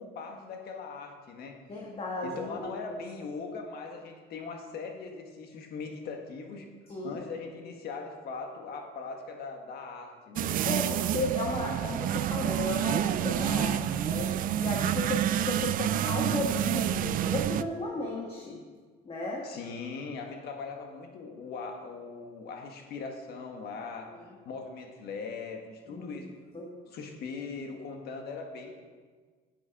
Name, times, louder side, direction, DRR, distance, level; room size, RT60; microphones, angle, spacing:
voice 1, 0.0-1.6 2.2-6.7 7.0-10.9 19.4-24.1 24.4-26.4 26.8-28.7, left 4 dB, 70° left, 3 dB, 1.6 m, -40 dB
voice 2, 1.7-3.0 6.9-7.2 10.6-10.8 11.1-14.3 14.6-18.6 19.0-19.5 25.9-26.2 26.5-26.7, left 2 dB, 35° left, -2 dB, 1.6 m, -34 dB
sound 1, 10.4-17.6, right 11 dB, 55° right, 0.4 m, -28 dB
8.5 x 8.3 x 5.3 m, 1.5 s
cardioid pair, 110°, 17 cm